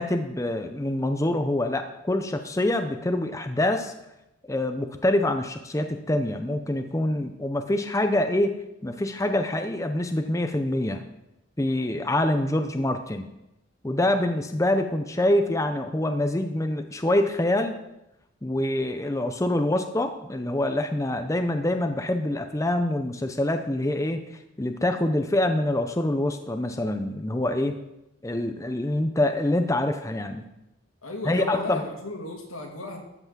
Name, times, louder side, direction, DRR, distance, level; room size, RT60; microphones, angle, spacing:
voice 1, 0.0-3.9 4.5-8.5 8.8-11.0 11.6-13.3 13.8-17.7 18.4-24.2 24.6-27.8 28.2-30.5 31.3-31.8, left 1 dB, 15° left, 7 dB, 0.6 m, -25 dB
voice 2, 31.0-33.0, left 2 dB, 85° left, 2 dB, 2.6 m, -35 dB
14.0 x 5.8 x 7.2 m, 0.89 s
head